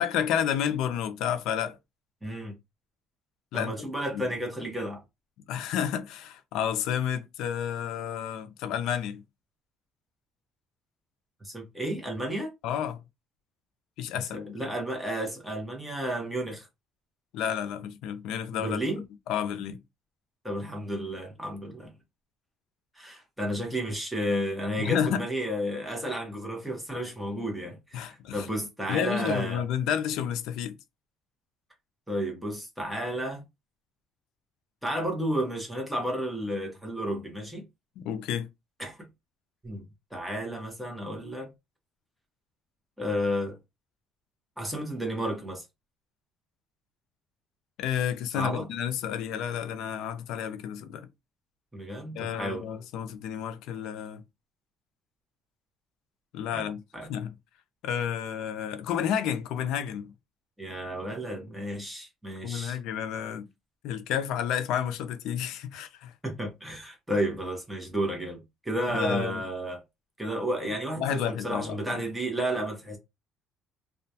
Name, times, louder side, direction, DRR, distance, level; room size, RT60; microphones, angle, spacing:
voice 1, 0.0-1.8 3.5-3.7 4.1-4.3 5.5-9.2 12.6-13.0 14.0-14.7 17.3-18.8 19.3-19.8 24.8-25.2 27.9-28.5 28.9-30.8 38.0-38.5 47.8-51.1 52.2-54.2 56.3-56.8 57.1-57.3 57.8-60.1 62.4-63.4 63.8-66.1 68.9-69.4 71.0-72.0, left 9 dB, 70° left, 0.4 m, -30 dB
voice 2, 2.2-2.5 3.5-5.0 11.4-12.5 14.3-16.7 18.5-19.0 20.4-21.9 23.0-29.6 32.1-33.4 34.8-37.6 38.8-39.0 39.6-39.8 40.1-41.5 43.0-43.6 44.6-45.6 48.3-48.7 51.7-52.6 56.5-56.7 56.9-57.1 60.6-62.8 66.2-69.8 70.2-73.0, equal, 5° right, 0.8 m, -32 dB
2.3 x 2.2 x 2.7 m
cardioid pair, 160°, 0 cm